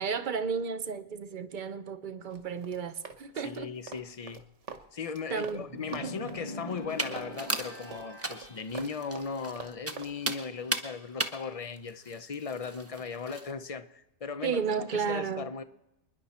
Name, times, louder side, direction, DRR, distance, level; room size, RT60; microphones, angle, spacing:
voice 1, 0.0-3.7 5.3-6.1 14.4-15.5, right 6 dB, 45° right, 0.9 m, -33 dB
Run, 2.3-5.6 5.9-10.1, right 5 dB, 90° right, 1.4 m, -45 dB
voice 2, 3.3-4.5 4.9-15.6, left 5 dB, 40° left, 0.6 m, -38 dB
sound 1, 5.7-8.7, left 1 dB, 20° left, 1.7 m, -43 dB
sound 2, 6.9-13.5, right 2 dB, 15° right, 0.9 m, -37 dB
28.0 x 10.5 x 4.3 m
omnidirectional pair, 1.2 m